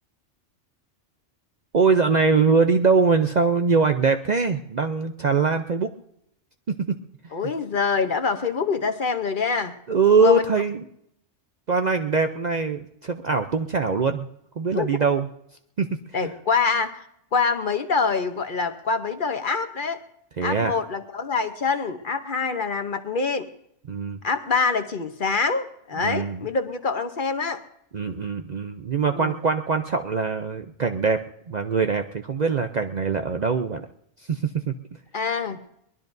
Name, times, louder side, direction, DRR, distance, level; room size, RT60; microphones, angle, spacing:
voice 1, 1.7-5.9 6.7-7.0 9.9-10.8 11.7-14.3 14.6-15.3 15.8-15.9 16.2-16.3 20.4-20.7 23.9-24.2 26.0-26.4 27.9-33.9 34.3-34.5, right 4 dB, 45° right, 6 dB, 0.6 m, -22 dB
voice 2, 7.3-9.7 10.2-10.5 14.7-15.0 16.1-20.0 20.4-23.5 24.2-27.6 29.1-29.4 35.1-35.6, left 5 dB, 50° left, 9 dB, 0.9 m, -25 dB
22.5 x 20.0 x 2.6 m, 0.76 s
omnidirectional pair, 1.2 m